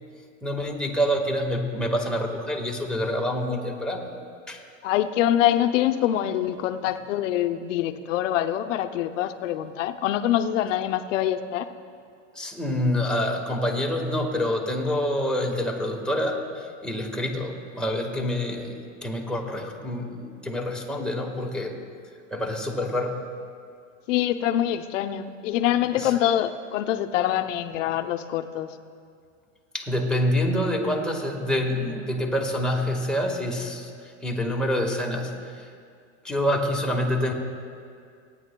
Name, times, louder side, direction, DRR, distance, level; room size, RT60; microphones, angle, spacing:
voice 1, 0.4-4.1 4.5-4.6 12.3-21.8 22.3-23.2 25.9-26.1 29.7-33.9 34.2-35.3 36.2-37.3, left 1 dB, ahead, -1 dB, 1.6 m, -27 dB
voice 2, 4.8-11.7 24.1-28.7, left 11 dB, 70° left, 9 dB, 0.8 m, -25 dB
28.5 x 9.9 x 2.3 m, 2.2 s
hypercardioid pair, 110°, 39 cm